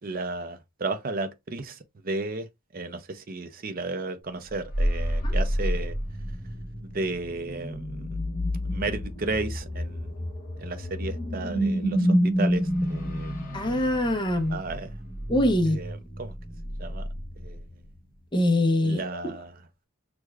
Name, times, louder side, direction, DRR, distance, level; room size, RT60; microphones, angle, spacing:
voice 1, 0.0-1.8 2.0-2.5 2.7-5.9 6.9-8.2 8.7-10.1 10.6-13.3 14.5-14.9 15.8-16.3 16.8-17.1 17.4-17.6 18.8-19.5, right 2 dB, 40° right, 0.5 m, -33 dB
sound 1, 4.5-18.0, equal, 40° left, 1.0 m, -29 dB
voice 2, 13.5-14.6 15.3-15.8 18.3-19.0, left 1 dB, 20° left, 0.6 m, -23 dB
6.3 x 2.2 x 2.3 m
head